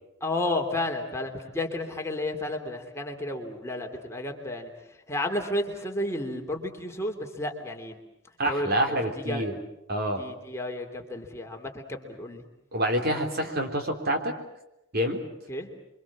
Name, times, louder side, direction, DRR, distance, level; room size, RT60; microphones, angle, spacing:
voice 1, 0.2-8.0 8.5-9.5 10.2-12.4 15.5-15.7, left 1 dB, 15° left, 2 dB, 3.1 m, -32 dB
voice 2, 8.4-9.5 9.9-10.2 12.7-14.3 14.9-15.2, right 1 dB, 50° right, 5 dB, 3.7 m, -27 dB
28.5 x 24.5 x 7.4 m, 0.88 s
head